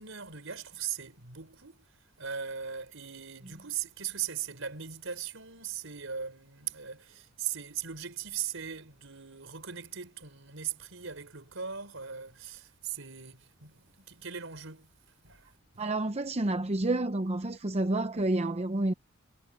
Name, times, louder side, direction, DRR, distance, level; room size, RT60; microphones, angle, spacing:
voice 1, 0.0-1.8 2.2-14.9 15.2-15.5, right 8 dB, 70° right, 5.0 m, -39 dB
voice 2, 15.8-18.9, right 2 dB, 30° right, 0.8 m, -29 dB
head